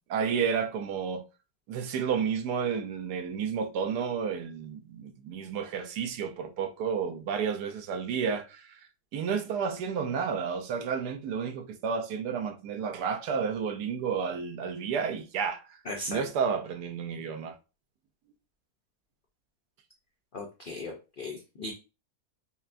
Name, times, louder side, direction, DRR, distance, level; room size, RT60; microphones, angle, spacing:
voice 1, 0.1-1.2 1.7-8.8 9.1-15.8 16.1-17.6, right 6 dB, 90° right, 1.3 m, -31 dB
voice 2, 15.9-16.2 20.3-21.7, left 2 dB, 85° left, 0.4 m, -37 dB
5.5 x 2.2 x 2.5 m
omnidirectional pair, 1.7 m